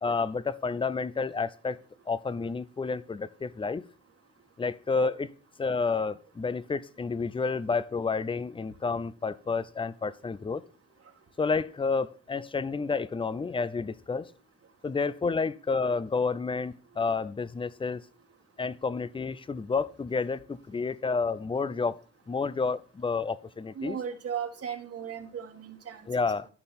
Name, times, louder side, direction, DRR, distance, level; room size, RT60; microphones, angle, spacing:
voice 1, 0.0-1.8 2.1-3.8 4.6-5.3 5.6-10.6 11.4-14.3 14.8-18.0 18.6-22.0 22.3-24.0 26.1-26.5, left 4 dB, 15° left, 0.6 m, -30 dB
voice 2, 23.8-26.0, right 8 dB, 50° right, 1.8 m, -36 dB
13.5 x 5.6 x 4.3 m
cardioid pair, 90°, 30 cm